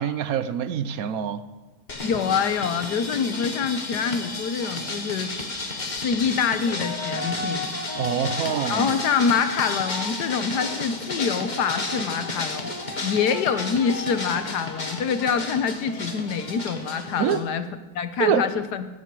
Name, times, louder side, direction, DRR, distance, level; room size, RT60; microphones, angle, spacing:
voice 1, 0.0-1.4 8.0-9.0 17.2-17.4 18.2-18.4, right 8 dB, 65° right, 1.1 m, -25 dB
sound 1, 1.9-17.4, left 2 dB, 30° left, 1.5 m, -32 dB
voice 2, 2.0-5.3 5.9-7.6 8.7-12.8 13.0-17.7 17.9-18.9, left 6 dB, 85° left, 1.6 m, -25 dB
16.5 x 15.0 x 4.7 m
omnidirectional pair, 1.7 m